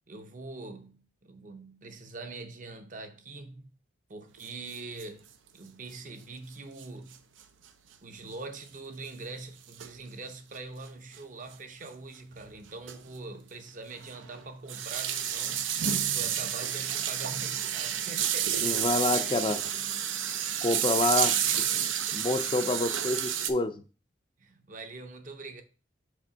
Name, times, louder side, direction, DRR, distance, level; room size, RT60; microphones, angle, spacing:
voice 1, 0.1-3.7 4.1-5.3 5.5-7.2 8.0-15.7 16.1-18.8 20.9-22.1 24.4-25.6, right 3 dB, 45° right, 0.7 m, -43 dB
sound 1, 4.4-4.5 4.7-4.8 5.0-5.1 6.8-6.9 7.1-7.2 8.2-8.3 9.8-10.0 11.1-11.2 11.9-12.0 12.3-12.5 12.9-13.1 13.3-13.4 14.0-23.5, right 9 dB, 90° right, 0.6 m, -30 dB
voice 2, 18.6-19.6 20.6-21.3 22.1-23.8, left 2 dB, 25° left, 0.4 m, -27 dB
5.0 x 3.7 x 5.5 m
head